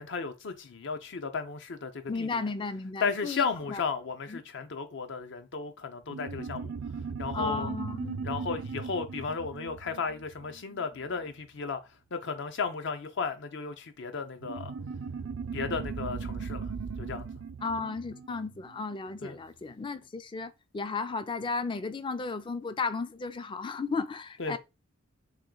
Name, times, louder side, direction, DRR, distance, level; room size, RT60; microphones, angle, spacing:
voice 1, 0.0-2.4 3.0-6.7 7.2-7.7 8.2-11.8 12.1-14.7 15.5-16.7 17.0-17.3 19.2-19.4 24.4-24.6, left 5 dB, 65° left, 0.6 m, -34 dB
voice 2, 2.1-3.8 4.3-4.4 7.3-8.2 17.6-24.6, left 4 dB, 25° left, 0.3 m, -34 dB
sound 1, 6.1-11.0 14.4-19.3, right 5 dB, 80° right, 0.4 m, -38 dB
3.0 x 2.9 x 3.8 m
head